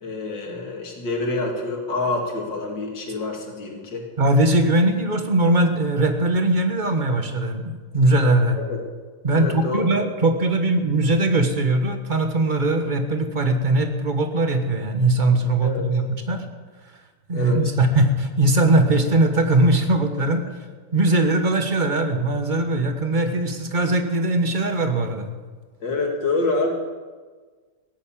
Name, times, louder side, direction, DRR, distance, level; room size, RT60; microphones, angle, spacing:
voice 1, 0.0-4.0 8.7-8.8 9.3-9.9 15.6-15.9 17.3-17.7 25.8-26.7, left 2 dB, 65° left, 1 dB, 3.0 m, -27 dB
voice 2, 4.2-8.6 9.2-16.4 17.3-20.4 20.9-25.3, right 2 dB, 25° right, 6 dB, 1.3 m, -20 dB
16.0 x 11.0 x 7.4 m, 1.4 s
omnidirectional pair, 2.1 m